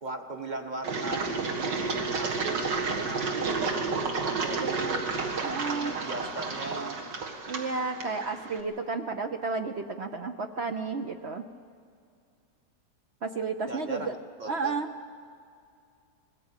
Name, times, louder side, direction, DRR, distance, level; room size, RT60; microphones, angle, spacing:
voice 1, 0.0-5.1 5.4-7.0 13.7-14.7, right 2 dB, 30° right, 6 dB, 1.1 m, -39 dB
Engine, 0.8-8.6, right 4 dB, 85° right, 2.4 m, -31 dB
voice 2, 4.5-5.0 5.4-6.0 7.4-11.4 13.2-14.1 14.5-14.9, right 4 dB, 55° right, 7 dB, 0.8 m, -32 dB
21.0 x 15.5 x 9.0 m, 2.3 s
omnidirectional pair, 1.9 m